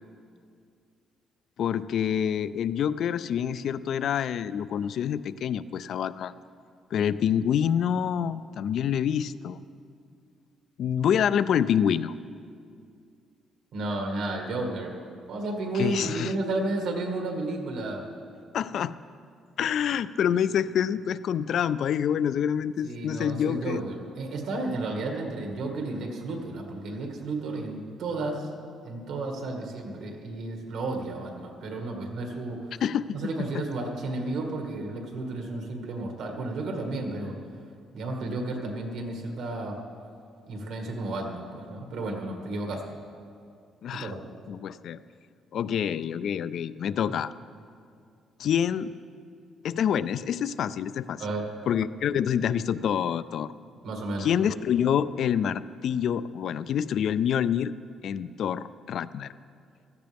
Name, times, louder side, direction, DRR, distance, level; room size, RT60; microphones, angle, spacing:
voice 1, 1.6-6.3 6.9-9.6 10.8-12.1 15.7-16.3 18.5-18.9 19.6-23.8 32.8-33.5 43.8-44.1 44.5-45.0 45.5-47.3 48.4-48.9 49.6-51.3 51.7-53.5 54.2-57.7 58.0-59.3, left 8 dB, 55° left, 15 dB, 0.3 m, -27 dB
voice 2, 13.7-14.9 15.3-18.0 22.8-28.5 28.8-32.8 33.1-37.3 37.9-39.8 40.5-42.8 43.9-44.2 51.2-51.5 53.8-54.3, right 2 dB, 70° right, 2 dB, 1.9 m, -32 dB
16.5 x 13.5 x 3.5 m, 2.3 s
cardioid pair, 160°, 0 cm